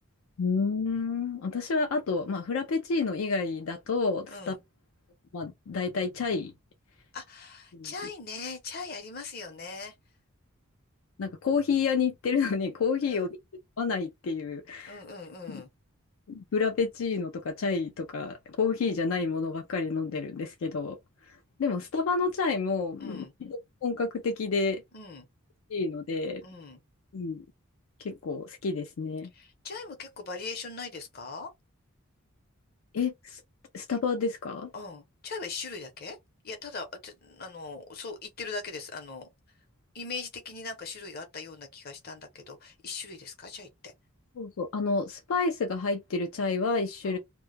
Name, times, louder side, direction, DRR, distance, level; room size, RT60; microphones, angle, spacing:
voice 1, 0.4-4.5 5.3-6.5 7.7-7.9 11.2-13.3 13.8-15.0 15.5-15.6 16.3-21.0 21.6-24.8 25.7-26.4 27.1-27.4 28.0-29.3 32.9-33.4 33.7-34.7 44.4-47.2, left 4 dB, 75° left, 0.4 m, -29 dB
voice 2, 4.3-4.6 7.1-9.9 13.1-13.3 14.9-15.7 23.0-23.3 24.9-25.3 26.4-26.8 29.3-31.5 34.7-36.2 36.4-39.3 39.9-43.9 47.0-47.2, left 4 dB, 45° left, 0.8 m, -40 dB
2.2 x 2.1 x 3.2 m
head